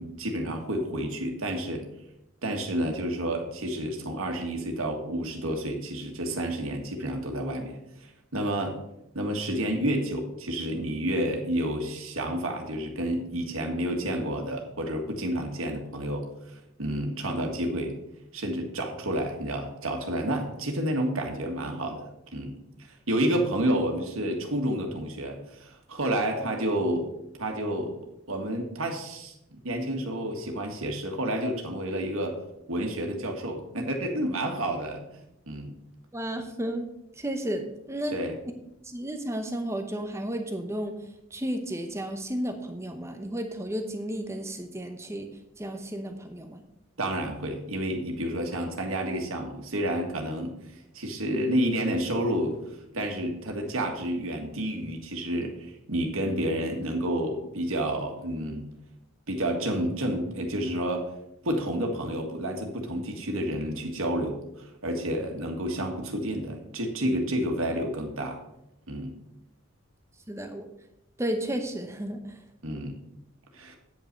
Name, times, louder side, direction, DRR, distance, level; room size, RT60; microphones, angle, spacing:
voice 1, 0.0-1.9 2.4-7.8 8.3-8.8 9.1-17.9 18.3-22.6 23.1-27.1 27.4-28.0 28.3-32.4 32.7-35.0 35.5-35.7 38.1-38.4 47.0-58.7 59.3-61.0 61.4-68.4 68.9-69.1 72.6-72.9 73.5-73.8, right 1 dB, 75° right, 2 dB, 1.8 m, -30 dB
voice 2, 36.1-36.9 37.2-38.2 38.8-40.9 41.3-45.3 45.6-46.6 70.3-70.6 71.2-72.4, right 1 dB, 15° right, 6 dB, 0.7 m, -33 dB
9.1 x 5.5 x 6.8 m, 0.83 s
head